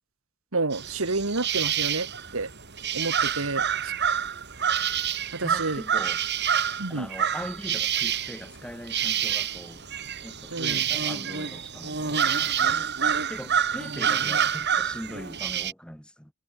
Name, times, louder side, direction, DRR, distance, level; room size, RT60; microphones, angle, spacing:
voice 1, 0.5-2.1 2.3-2.5 2.9-3.9 5.3-5.8 6.8-7.1 10.5-10.8, right 3 dB, 70° right, 1.8 m, -29 dB
sound 1, 0.7-15.7, right 8 dB, 50° right, 6.4 m, -27 dB
voice 2, 5.4-6.2 6.9-9.9 10.2-12.9 13.3-16.3, equal, 5° left, 7.5 m, -41 dB
head